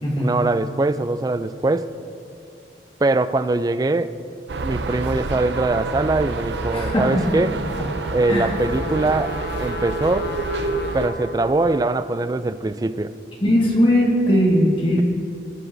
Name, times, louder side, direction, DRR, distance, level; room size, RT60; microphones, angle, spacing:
voice 1, 0.2-2.0 3.0-4.2 4.6-7.6 8.1-10.4 10.9-13.1, right 2 dB, 20° right, 13 dB, 0.3 m, -22 dB
sound 1, 4.5-11.1, right 3 dB, 75° right, 0.6 m, -28 dB
Trumpet, 6.5-12.2, left 4 dB, 60° left, 1.0 m, -37 dB
voice 2, 6.7-7.0 8.3-8.5 13.4-15.0, equal, 30° left, -2 dB, 1.7 m, -18 dB
20.0 x 12.5 x 2.7 m, 2.6 s
head